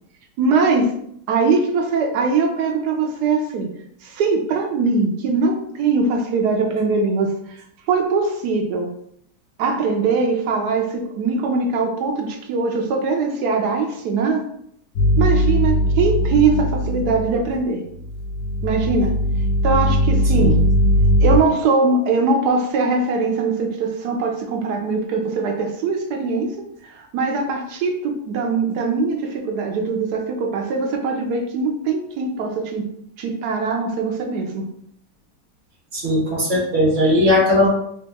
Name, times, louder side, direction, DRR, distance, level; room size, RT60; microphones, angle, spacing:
voice 1, 0.4-0.9 1.3-3.7 4.0-8.9 9.6-14.4 15.2-17.8 18.6-19.2 19.6-20.6 21.2-26.6 26.8-32.9 33.2-34.6, right 4 dB, 75° right, 3 dB, 0.9 m, -21 dB
sound 1, 15.0-17.6 18.0-21.4, equal, 75° left, 1.3 m, -19 dB
voice 2, 35.9-37.7, left 1 dB, 45° right, -3 dB, 1.1 m, -18 dB
3.4 x 2.9 x 3.4 m, 0.70 s
omnidirectional pair, 2.2 m